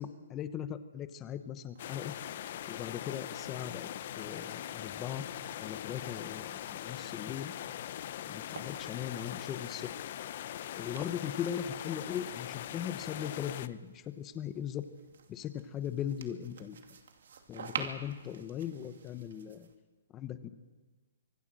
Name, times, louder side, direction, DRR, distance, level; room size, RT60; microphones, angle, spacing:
voice 1, 0.0-2.1 2.7-3.9 4.2-5.2 5.6-7.5 8.2-9.9 10.8-14.8 15.3-16.8 17.5-19.7 20.1-20.5, left 9 dB, 15° left, 11 dB, 1.0 m, -39 dB
sound 1, 1.6-9.7 10.7-19.8, right 6 dB, 65° right, 2.4 m, -50 dB
sound 2, 1.8-13.7, left 11 dB, 40° left, 0.7 m, -41 dB
25.0 x 16.5 x 7.7 m, 1.3 s
hypercardioid pair, 170°, 0 cm